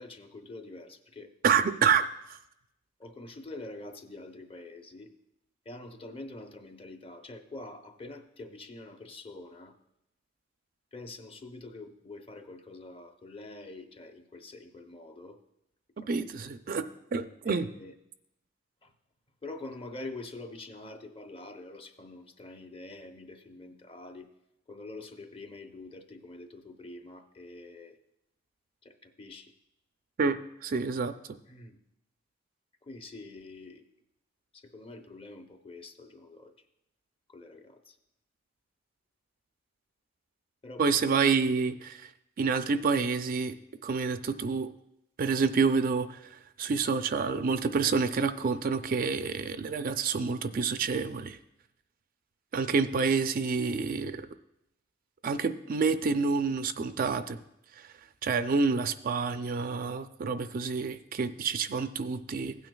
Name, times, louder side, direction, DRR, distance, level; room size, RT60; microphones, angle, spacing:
voice 1, 0.0-1.3 3.0-5.1 5.7-9.8 10.9-15.4 16.0-16.1 17.4-17.9 18.8-18.9 19.4-24.3 24.7-28.0 28.8-29.5 31.5-31.8 32.8-33.9 34.5-36.5 37.3-38.0 40.6-41.1, left 2 dB, 25° left, 6 dB, 0.7 m, -45 dB
voice 2, 1.4-2.4 16.1-16.8 17.1-17.7 30.2-31.1 40.8-42.0 42.4-43.5 43.8-44.7 45.2-46.2 46.6-51.4 52.5-54.2 55.2-57.4 58.2-62.6, right 5 dB, 45° right, 10 dB, 0.4 m, -28 dB
16.0 x 9.1 x 2.3 m, 0.84 s
head